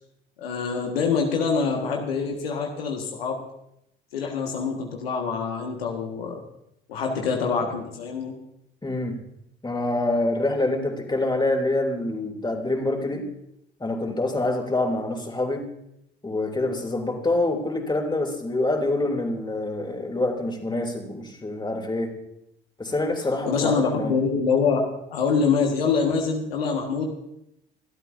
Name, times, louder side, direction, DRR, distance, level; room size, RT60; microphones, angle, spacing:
voice 1, 0.4-3.4 4.1-6.4 6.9-8.3 23.5-24.8 25.1-27.1, left 5 dB, 80° left, 1 dB, 1.7 m, -25 dB
voice 2, 8.8-9.2 9.6-13.3 13.8-15.7 16.2-22.1 22.8-24.1, left 2 dB, 15° left, 2 dB, 3.1 m, -26 dB
24.5 x 12.5 x 2.7 m, 0.80 s
figure-of-eight pair, 60°, 29 cm